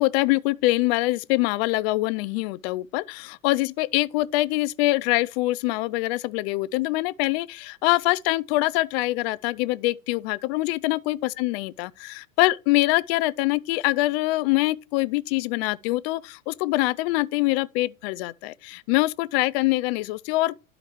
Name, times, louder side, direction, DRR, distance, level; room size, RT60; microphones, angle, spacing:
voice 1, 0.0-20.5, left 20 dB, 50° left, 0.4 m, -24 dB
12.0 x 5.0 x 3.0 m
hypercardioid pair, 115°, 41 cm